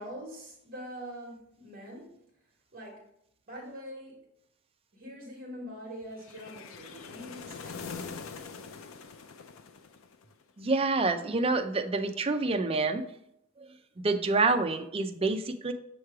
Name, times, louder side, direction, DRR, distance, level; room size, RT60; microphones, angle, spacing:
voice 1, 0.0-2.2 2.7-3.1 3.5-4.2 4.9-8.2, equal, 45° right, -3 dB, 1.4 m, -44 dB
sound 1, 6.2-10.4, left 5 dB, 80° left, 0.5 m, -43 dB
voice 2, 10.6-13.0 13.6-15.7, right 3 dB, 30° right, 6 dB, 0.5 m, -28 dB
6.5 x 3.1 x 4.7 m, 0.76 s
head